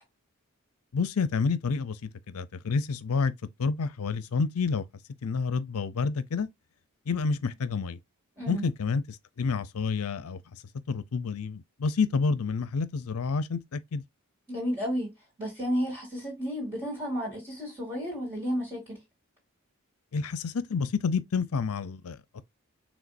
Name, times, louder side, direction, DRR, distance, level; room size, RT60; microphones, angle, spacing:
voice 1, 0.9-3.3 3.6-4.8 5.2-6.5 7.1-8.0 8.5-10.4 10.9-14.0 20.1-22.4, left 5 dB, 80° left, 0.5 m, -29 dB
voice 2, 8.4-8.7 14.5-15.1 15.4-19.0, equal, 20° right, 2.8 m, -32 dB
5.0 x 3.5 x 2.6 m
head